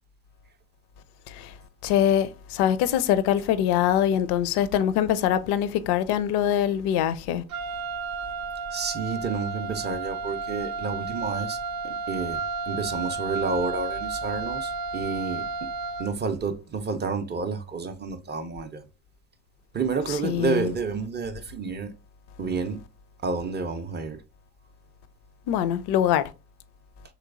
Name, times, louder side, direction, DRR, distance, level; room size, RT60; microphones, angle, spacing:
voice 1, 1.8-7.4 20.2-20.7 25.5-26.3, left 10 dB, 55° left, 0.5 m, -23 dB
Wind instrument woodwind instrument, 7.5-16.2, right 4 dB, 70° right, 0.6 m, -32 dB
voice 2, 8.7-11.6 11.8-15.7 16.0-18.8 19.7-21.9 22.4-22.8 23.2-24.2, right 4 dB, 25° right, 0.4 m, -30 dB
3.1 x 3.1 x 2.4 m
hypercardioid pair, 65°, 49 cm